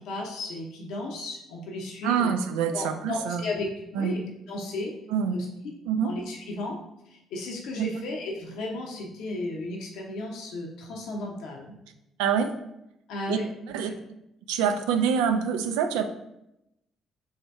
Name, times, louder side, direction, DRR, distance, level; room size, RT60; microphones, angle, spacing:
voice 1, 0.0-2.3 2.7-4.9 5.3-5.5 6.0-6.8 7.1-11.7 13.1-13.5 13.8-14.0, left 2 dB, 75° left, 0 dB, 0.7 m, -34 dB
voice 2, 2.0-3.4 4.0-4.1 5.1-5.4 5.9-6.1 7.8-7.9 12.2-12.5 13.3-13.4 13.7-13.9 14.5-16.0, right 7 dB, 90° right, 7 dB, 0.3 m, -25 dB
3.2 x 2.7 x 4.5 m, 0.85 s
supercardioid pair, 65°, 0 cm